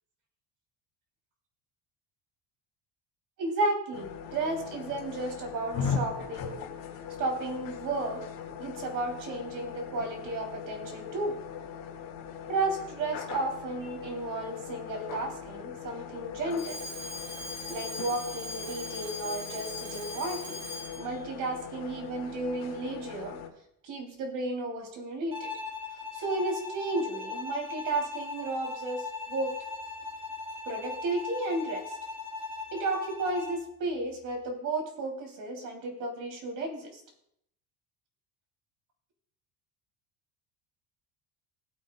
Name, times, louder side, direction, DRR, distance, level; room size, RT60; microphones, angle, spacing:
voice 1, 3.4-6.7 7.2-8.2 8.6-11.4 12.5-16.8 17.7-20.6 21.0-23.4 23.8-25.5 26.1-29.5 30.6-32.0 32.7-37.0, right 2 dB, 50° right, 3 dB, 3.1 m, -33 dB
sound 1, 3.9-23.5, left 7 dB, 55° left, 2.2 m, -40 dB
Alarm, 16.5-21.1, left 1 dB, 30° right, 2.6 m, -41 dB
Bowed string instrument, 25.3-33.7, left 4 dB, 15° right, 1.9 m, -39 dB
20.0 x 8.3 x 2.3 m, 0.73 s
cardioid pair, 160°, 41 cm